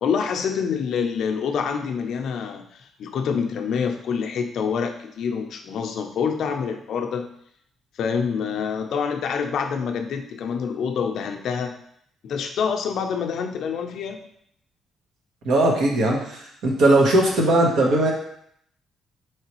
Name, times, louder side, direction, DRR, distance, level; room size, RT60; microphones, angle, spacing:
voice 1, 0.0-7.3 8.0-11.8 12.2-14.2, left 6 dB, 70° left, 4 dB, 0.5 m, -26 dB
voice 2, 15.4-18.1, right 1 dB, 85° right, -1 dB, 1.0 m, -19 dB
4.6 x 3.2 x 3.0 m, 0.70 s
cardioid pair, 90°, 0 cm